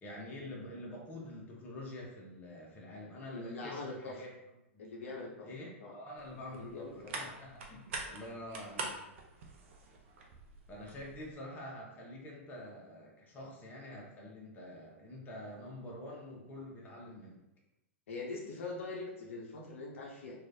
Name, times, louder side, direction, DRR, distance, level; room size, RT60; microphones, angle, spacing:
voice 1, 0.0-4.3 4.7-4.8 5.4-9.0 10.7-17.4, left 1 dB, 25° left, -3 dB, 0.9 m, -47 dB
voice 2, 3.3-4.2 4.8-5.5 5.8-5.9 6.5-7.2 18.1-20.4, left 3 dB, 70° left, -1 dB, 0.6 m, -42 dB
sound 1, 6.2-11.3, right 3 dB, 60° right, 0.5 m, -45 dB
3.0 x 2.4 x 2.6 m, 0.90 s
hypercardioid pair, 105°, 7 cm